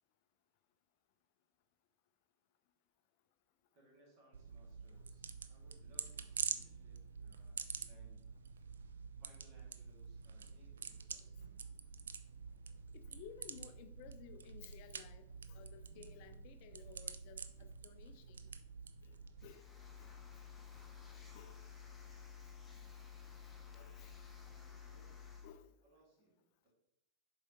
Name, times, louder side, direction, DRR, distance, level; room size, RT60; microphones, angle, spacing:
voice 1, 3.7-8.3 9.2-11.5 24.4-25.3 25.8-26.5, right 1 dB, 45° right, -1 dB, 2.3 m, -68 dB
sound 1, 4.3-19.5, right 6 dB, 70° right, 0.3 m, -47 dB
voice 2, 12.9-18.5 19.0-19.6 20.0-20.1 20.8-21.6 23.7-24.1 25.4-25.7, left 9 dB, 45° left, 10 dB, 0.4 m, -57 dB
sound 2, 19.4-25.5, left 6 dB, 5° left, 0.9 m, -53 dB
7.2 x 4.6 x 3.1 m, 0.82 s
figure-of-eight pair, 90°, 0 cm